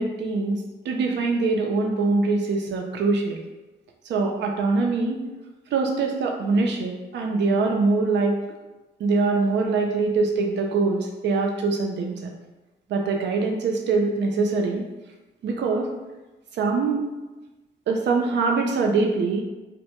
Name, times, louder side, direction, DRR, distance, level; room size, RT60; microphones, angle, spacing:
voice 1, 0.0-3.4 4.1-5.2 5.7-8.4 9.0-12.3 12.9-14.8 15.4-15.9 16.5-17.0 17.9-19.4, right 3 dB, 75° right, 2 dB, 0.5 m, -23 dB
2.1 x 2.1 x 2.9 m, 1.1 s
cardioid pair, 100°, 19 cm